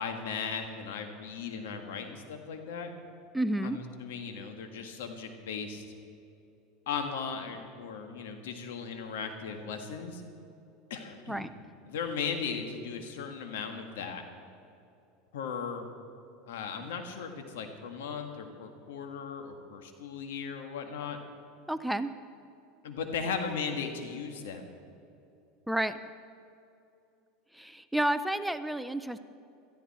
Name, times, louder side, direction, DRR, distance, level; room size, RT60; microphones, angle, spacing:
voice 1, 0.0-2.9 3.6-5.8 6.9-10.2 10.9-11.5 11.9-14.2 15.3-15.9 16.5-21.2 22.8-24.6, left 6 dB, 85° left, 5 dB, 1.8 m, -37 dB
voice 2, 3.3-3.8 11.3-11.5 21.7-22.1 25.7-26.0 27.5-29.2, right 1 dB, 5° right, 11 dB, 0.5 m, -30 dB
17.5 x 13.5 x 4.4 m, 2.7 s
supercardioid pair, 125°, 0 cm